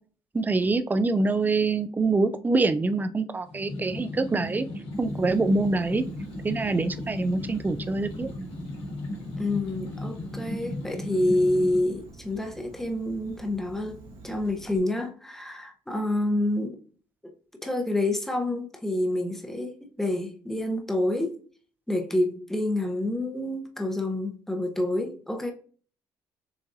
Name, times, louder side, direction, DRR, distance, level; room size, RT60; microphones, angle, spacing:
voice 1, 0.3-4.7 5.0-6.0 6.4-8.3, right 3 dB, 20° right, 0.4 m, -25 dB
sound 1, 3.4-11.8, left 1 dB, 75° left, 1.7 m, -36 dB
Insect, 4.9-14.8, right 2 dB, 75° right, 1.7 m, -48 dB
voice 2, 9.4-16.8 17.6-21.4 21.9-25.5, left 1 dB, 5° left, 0.9 m, -28 dB
6.9 x 2.6 x 2.7 m
supercardioid pair, 75°, 10 cm